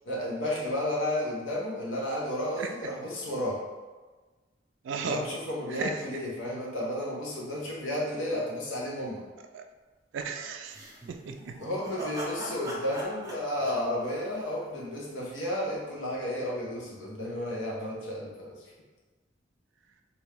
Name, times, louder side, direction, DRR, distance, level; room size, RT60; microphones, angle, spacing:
voice 1, 0.1-3.6 5.0-9.2 11.6-18.5, left 1 dB, 85° left, -4 dB, 0.9 m, -32 dB
voice 2, 4.8-5.2 5.7-6.0 9.5-9.6 10.1-10.8 11.1-11.6, right 5 dB, 75° right, 6 dB, 0.3 m, -35 dB
sound 1, 10.7-14.8, right 1 dB, 15° right, 0.6 m, -41 dB
2.9 x 2.6 x 3.3 m, 1.3 s
head